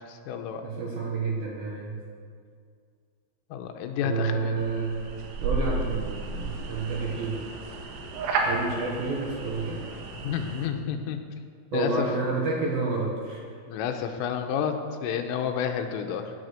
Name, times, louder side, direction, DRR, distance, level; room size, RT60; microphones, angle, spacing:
voice 1, 0.1-0.6 3.5-4.6 9.7-9.8 10.2-11.2 11.7-12.1 13.7-14.7 15.0-16.3, left 8 dB, 80° left, 6 dB, 3.4 m, -30 dB
voice 2, 0.6-2.0 4.0-5.1 5.4-7.4 8.4-9.9 11.7-13.4, right 4 dB, 65° right, -2 dB, 2.4 m, -29 dB
sound 1, 4.6-10.7, right 3 dB, 85° right, 4.2 m, -32 dB
16.5 x 10.0 x 6.6 m, 2.2 s
omnidirectional pair, 5.9 m